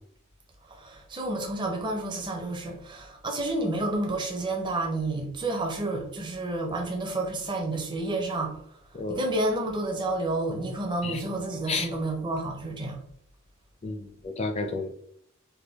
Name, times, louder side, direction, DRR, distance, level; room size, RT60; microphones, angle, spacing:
voice 1, 0.6-13.0, right 2 dB, 20° right, 2 dB, 0.5 m, -30 dB
voice 2, 13.8-14.9, left 3 dB, 30° left, 6 dB, 0.4 m, -31 dB
3.4 x 2.2 x 3.4 m, 0.69 s
head